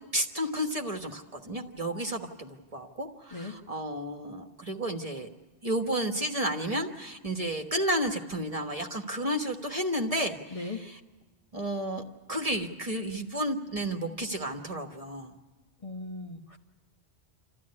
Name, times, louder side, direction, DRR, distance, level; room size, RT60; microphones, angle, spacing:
voice 1, 0.1-5.3 5.6-11.0 11.5-12.0 12.3-15.4, right 1 dB, 35° right, 4 dB, 1.4 m, -32 dB
voice 2, 10.5-10.9 15.8-16.6, left 2 dB, 30° left, 2 dB, 1.2 m, -38 dB
28.0 x 14.0 x 9.6 m, 1.3 s
omnidirectional pair, 1.1 m